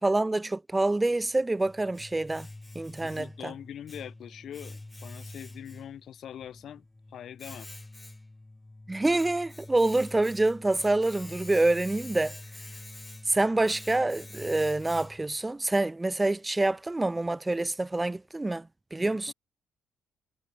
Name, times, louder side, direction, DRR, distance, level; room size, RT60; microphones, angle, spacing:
voice 1, 0.0-2.5 2.7-3.5 8.9-12.3 13.3-19.3, right 2 dB, 15° right, 0.4 m, -26 dB
Domestic sounds home sounds, 1.1-15.4, left 2 dB, 15° left, 2.3 m, -46 dB
voice 2, 3.0-7.7 19.0-19.2, left 10 dB, 65° left, 0.8 m, -43 dB
cardioid pair, 90°, 0 cm